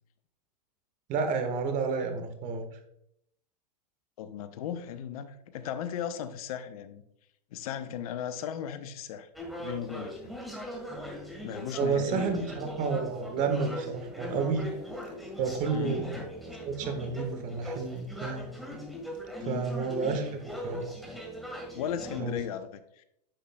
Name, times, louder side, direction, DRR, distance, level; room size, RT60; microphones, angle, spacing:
voice 1, 1.1-2.6 11.8-14.7 15.4-16.2 16.4-18.4 19.4-20.3 20.6-20.9 22.2-22.4, right 5 dB, 35° right, 6 dB, 1.4 m, -30 dB
voice 2, 4.2-7.0 7.5-9.3 9.6-10.3 11.4-12.4 15.7-16.0 19.4-19.7 21.7-23.0, left 9 dB, 60° left, 12 dB, 0.7 m, -36 dB
sound 1, 9.3-22.2, equal, ahead, 1.8 m, -40 dB
sound 2, 14.6-15.4 17.5-18.2 20.3-20.9, right 2 dB, 90° right, 1.9 m, -50 dB
10.0 x 5.5 x 2.3 m, 0.75 s
hypercardioid pair, 110°, 21 cm